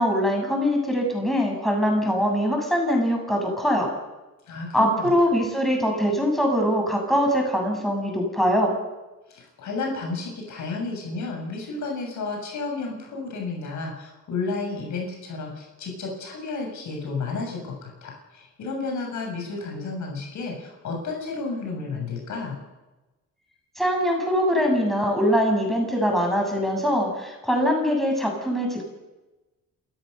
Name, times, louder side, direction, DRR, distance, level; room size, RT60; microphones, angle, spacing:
voice 1, 0.0-3.9 4.7-8.7 23.8-28.8, equal, ahead, 1 dB, 7.1 m, -22 dB
voice 2, 4.5-5.1 9.3-22.6, left 3 dB, 70° left, 1 dB, 7.4 m, -32 dB
28.0 x 14.0 x 6.8 m, 1.1 s
cardioid pair, 90°, 30 cm